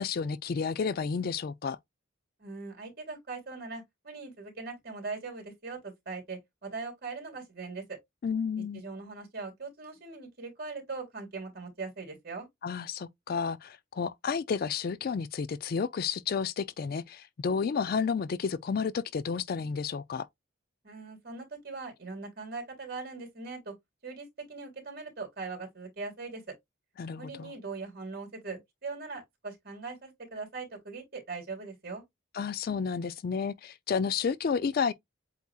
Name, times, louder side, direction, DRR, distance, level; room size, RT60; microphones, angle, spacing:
voice 1, 0.0-1.8 8.2-8.8 12.6-20.3 27.0-27.5 32.3-34.9, left 6 dB, 50° left, 0.3 m, -31 dB
voice 2, 2.4-8.0 8.7-12.5 20.8-23.7 24.0-26.4 27.2-32.0, right 4 dB, 50° right, 2.9 m, -40 dB
8.2 x 2.8 x 2.3 m
head